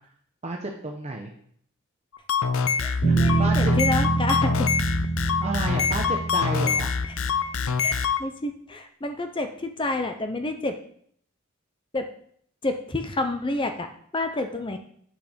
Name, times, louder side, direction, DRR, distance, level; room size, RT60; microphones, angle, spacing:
voice 1, 0.4-1.3 3.1-3.8 5.4-6.9 14.3-14.4, right 2 dB, 35° right, 1 dB, 0.8 m, -31 dB
sound 1, 2.1-8.2, left 6 dB, 80° left, 0.6 m, -25 dB
voice 2, 2.8-4.7 7.8-10.8 11.9-12.0 12.6-13.9 14.1-14.8, left 2 dB, 25° left, 7 dB, 0.6 m, -29 dB
Bass guitar, 3.0-7.4, right 3 dB, 65° left, 4.6 m, -25 dB
8.1 x 6.7 x 5.1 m, 0.64 s
head